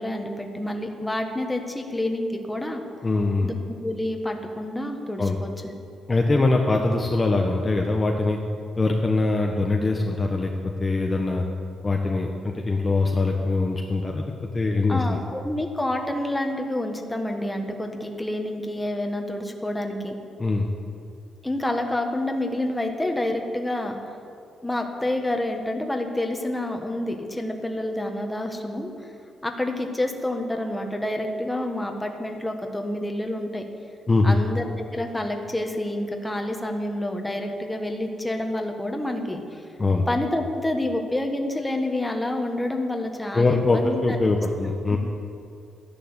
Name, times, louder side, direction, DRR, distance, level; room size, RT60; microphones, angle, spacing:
voice 1, 0.0-2.8 3.4-5.5 14.9-20.2 21.4-24.0 24.6-28.9 29.4-33.7 34.2-39.6 40.1-44.0 44.9-45.0, left 1 dB, 5° left, 3 dB, 1.6 m, -28 dB
voice 2, 3.0-3.5 5.2-5.4 6.1-8.4 8.8-10.5 10.8-11.5 11.8-15.0 20.4-20.7 34.1-34.4 39.8-40.1 43.3-45.0, left 3 dB, 25° left, 1 dB, 1.1 m, -22 dB
14.0 x 11.0 x 8.1 m, 2.5 s
cardioid pair, 130°, 0 cm